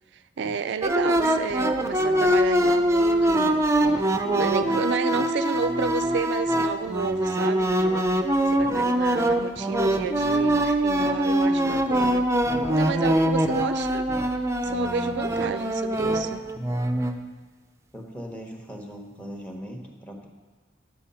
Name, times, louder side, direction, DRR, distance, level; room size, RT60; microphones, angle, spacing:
voice 1, 0.1-4.1 4.4-7.7 8.5-12.3 12.7-14.1 14.6-16.4, right 6 dB, 65° right, 10 dB, 0.4 m, -31 dB
sound 1, 0.8-17.1, right 1 dB, 15° right, 0.6 m, -23 dB
voice 2, 17.9-20.3, equal, 5° left, 1 dB, 1.3 m, -40 dB
10.0 x 7.6 x 5.6 m, 1.4 s
head